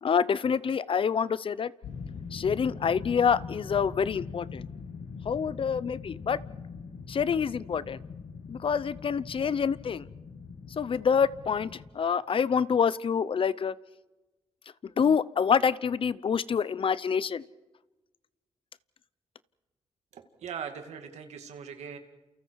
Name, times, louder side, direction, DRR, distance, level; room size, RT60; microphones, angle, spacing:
voice 1, 0.0-1.7 2.3-4.7 5.3-6.4 7.1-8.0 8.5-10.0 10.8-11.7 11.9-13.7 15.0-17.4, left 6 dB, 50° left, 18 dB, 0.7 m, -26 dB
sound 1, 1.8-11.9, left 5 dB, 80° left, 2.1 m, -42 dB
voice 2, 20.1-22.0, right 7 dB, 85° right, 6 dB, 2.4 m, -40 dB
29.5 x 28.5 x 4.8 m, 1.1 s
cardioid pair, 75°, 11 cm